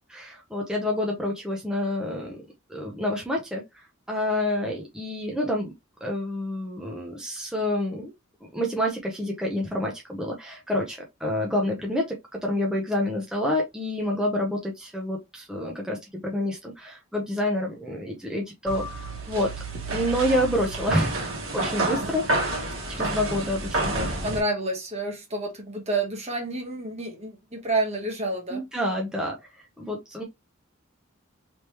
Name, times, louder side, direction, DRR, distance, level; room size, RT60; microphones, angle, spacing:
voice 1, 0.1-2.4 2.7-5.7 6.0-8.1 8.5-19.5 19.9-24.1 28.5-29.4 29.8-30.2, left 1 dB, 5° right, 0.7 m, -28 dB
sound 1, 18.7-24.4, right 2 dB, 75° right, 1.4 m, -29 dB
voice 2, 24.2-28.6, right 2 dB, 35° right, 1.1 m, -29 dB
3.4 x 3.0 x 2.9 m
head